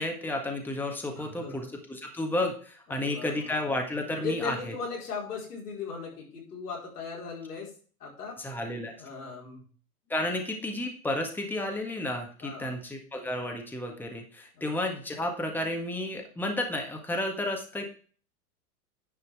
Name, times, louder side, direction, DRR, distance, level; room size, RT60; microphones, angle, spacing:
voice 1, 0.0-4.7 8.4-9.0 10.1-17.9, left 1 dB, 5° left, 2 dB, 1.7 m, -32 dB
voice 2, 1.1-1.7 2.9-3.6 4.2-7.7 8.0-8.4 8.9-9.6 12.4-12.8 14.5-14.7, left 5 dB, 90° left, -3 dB, 4.8 m, -38 dB
10.5 x 5.5 x 4.7 m, 0.42 s
hypercardioid pair, 115°, 45 cm